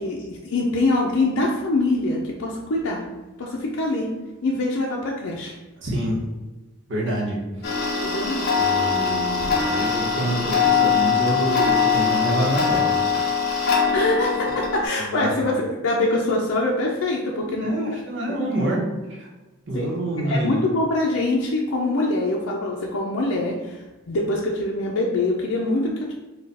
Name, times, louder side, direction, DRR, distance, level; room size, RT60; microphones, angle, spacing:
voice 1, 0.0-3.0 3.4-4.1 4.4-5.6 8.0-8.4 13.9-15.5 15.8-17.7 18.3-18.5 19.7-19.9 20.2-23.8 24.1-26.1, left 2 dB, 80° left, -2 dB, 0.5 m, -24 dB
voice 2, 5.8-6.2 6.9-7.4 8.6-13.4 15.0-15.4 17.5-18.8 19.2-19.3 19.7-20.6, right 1 dB, 55° right, -2 dB, 0.9 m, -27 dB
Tick-tock, 7.6-14.8, left 6 dB, 45° left, 0.8 m, -22 dB
4.2 x 2.3 x 4.1 m, 1.2 s
head